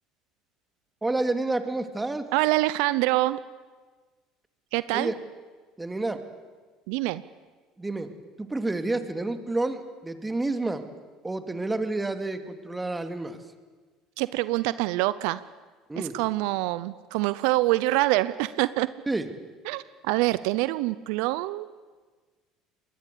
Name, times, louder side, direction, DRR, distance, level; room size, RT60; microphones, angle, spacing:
voice 1, 1.0-2.3 4.9-5.2 5.8-6.2 7.8-8.1 8.4-10.8 11.2-13.4 15.9-16.2 19.1-19.3, right 2 dB, 15° right, 7 dB, 2.5 m, -29 dB
voice 2, 2.3-3.4 4.7-5.1 6.9-7.2 14.2-15.4 16.0-18.9 19.7-21.7, right 18 dB, 75° right, 16 dB, 0.6 m, -25 dB
23.5 x 20.0 x 8.4 m, 1.4 s
hypercardioid pair, 80°, 0 cm